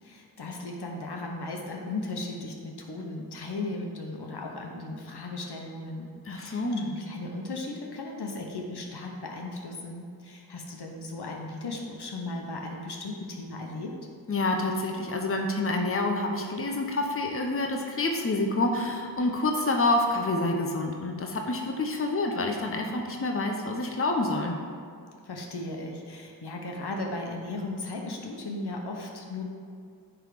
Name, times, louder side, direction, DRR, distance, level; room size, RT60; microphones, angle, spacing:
voice 1, 0.0-14.0 25.2-29.4, left 2 dB, 70° left, 1 dB, 1.1 m, -36 dB
voice 2, 6.3-6.9 14.3-24.5, left 2 dB, 30° left, 2 dB, 0.9 m, -27 dB
9.8 x 3.5 x 5.0 m, 2.3 s
cardioid pair, 45°, 42 cm